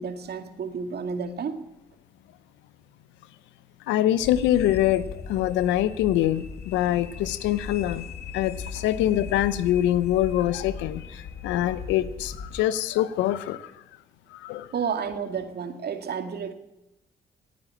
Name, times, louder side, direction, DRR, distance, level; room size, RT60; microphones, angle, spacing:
voice 1, 0.0-1.6 8.8-8.9 14.7-16.5, right 6 dB, 60° right, 2.1 m, -31 dB
voice 2, 3.9-8.0 8.3-13.7 14.3-14.7, left 13 dB, 90° left, 0.8 m, -24 dB
sound 1, 4.2-12.6, left 6 dB, 60° left, 2.0 m, -38 dB
17.5 x 9.6 x 8.6 m
supercardioid pair, 60°, 19 cm